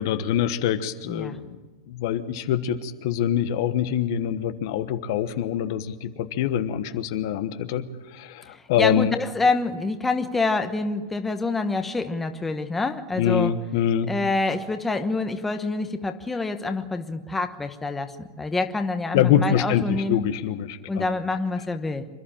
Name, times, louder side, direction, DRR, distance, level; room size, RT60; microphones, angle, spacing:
voice 1, 0.0-1.6 1.9-9.2 13.2-14.1 19.1-21.1, left 10 dB, 60° left, 10 dB, 1.2 m, -25 dB
voice 2, 1.1-1.4 8.4-13.5 14.1-20.2 20.9-22.1, left 3 dB, 10° left, 7 dB, 1.1 m, -26 dB
26.5 x 11.5 x 8.8 m, 1.3 s
supercardioid pair, 140°, 2 cm